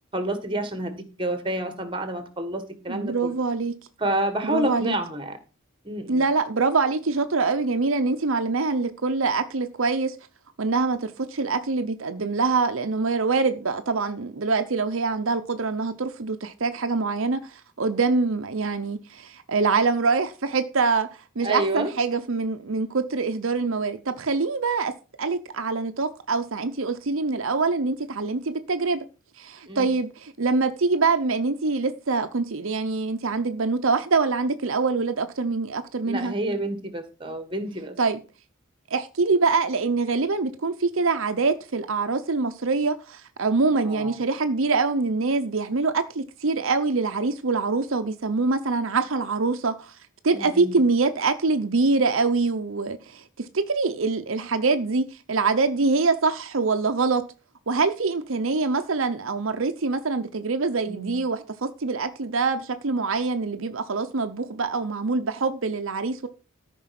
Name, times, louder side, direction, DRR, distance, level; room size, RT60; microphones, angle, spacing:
voice 1, 0.1-3.3 4.0-5.4 5.8-6.2 21.4-21.9 29.7-29.9 36.0-38.0 43.8-44.2 50.3-50.8 60.9-61.2, right 1 dB, 25° right, 1.6 m, -29 dB
voice 2, 2.9-3.7 4.4-4.9 6.1-10.2 10.6-21.1 21.4-24.9 25.2-29.0 29.4-36.3 38.0-38.2 38.9-50.0 50.2-57.2 57.7-66.3, right 4 dB, 65° right, 0.8 m, -24 dB
13.5 x 5.5 x 5.9 m
head